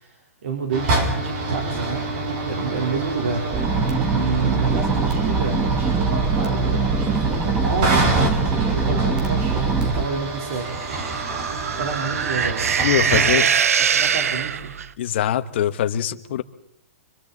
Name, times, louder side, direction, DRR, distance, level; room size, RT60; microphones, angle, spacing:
voice 1, 0.0-3.4 4.1-10.7 11.8-12.7 13.1-13.4 13.9-14.7, right 5 dB, 65° right, 1 dB, 3.8 m, -29 dB
sound 1, 0.7-13.3, right 2 dB, 40° right, 4.2 m, -27 dB
sound 2, 3.5-10.0, right 4 dB, 10° right, 1.3 m, -22 dB
sound 3, 10.6-14.9, right 7 dB, 90° right, 0.9 m, -22 dB
voice 2, 12.8-13.5 15.0-16.4, left 10 dB, 50° left, 10 dB, 1.3 m, -23 dB
29.5 x 24.5 x 4.1 m, 0.74 s
hypercardioid pair, 160°, 8 cm